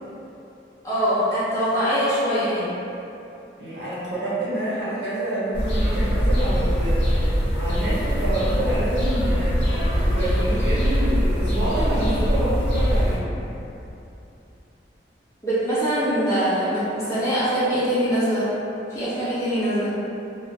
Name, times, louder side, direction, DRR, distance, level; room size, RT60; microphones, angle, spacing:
voice 1, 0.8-2.7 15.4-18.5 18.9-20.0, equal, 15° left, -12 dB, 0.7 m, -23 dB
voice 2, 3.6-9.6 10.1-13.2, right 1 dB, 75° right, -10 dB, 0.9 m, -27 dB
sound 1, 5.5-13.2, equal, 90° left, 0.6 m, -22 dB
2.3 x 2.0 x 2.8 m, 2.8 s
head